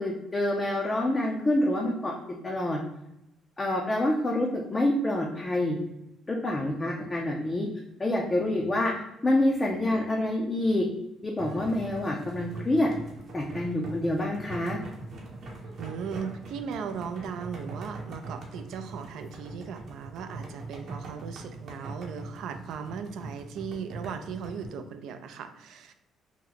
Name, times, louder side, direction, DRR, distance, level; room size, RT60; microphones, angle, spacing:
voice 1, 0.0-2.1 2.4-2.8 3.6-5.8 6.3-7.7 8.0-8.9 9.2-10.9 11.2-12.9 13.3-14.8, left 1 dB, 20° left, 0 dB, 0.4 m, -27 dB
sound 1, 11.4-24.7, right 2 dB, 50° right, 0.8 m, -42 dB
voice 2, 15.8-25.9, right 6 dB, 75° right, 8 dB, 0.3 m, -37 dB
2.8 x 2.1 x 3.8 m, 0.87 s
cardioid pair, 120°, 0 cm